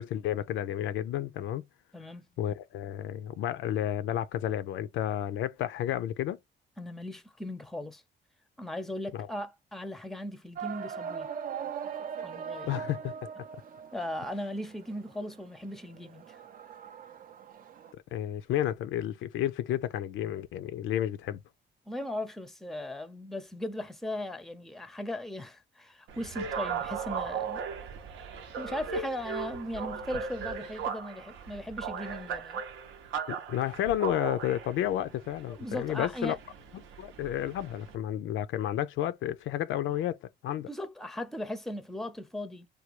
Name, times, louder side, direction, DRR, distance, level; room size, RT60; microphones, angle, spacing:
voice 1, 0.0-1.6 2.4-6.4 9.1-9.3 12.6-13.3 18.1-21.4 33.3-36.4 37.0-40.7, left 11 dB, 80° left, 0.4 m, -31 dB
voice 2, 1.9-2.3 6.8-8.0 8.6-11.3 12.2-12.7 13.9-16.4 21.9-27.6 28.6-32.6 35.5-36.4 40.5-42.7, left 1 dB, ahead, 0.5 m, -38 dB
sound 1, 10.6-17.9, right 7 dB, 45° right, 0.4 m, -40 dB
sound 2, 26.1-37.9, right 6 dB, 80° right, 0.7 m, -38 dB
3.3 x 2.3 x 2.9 m
cardioid pair, 90°, 20 cm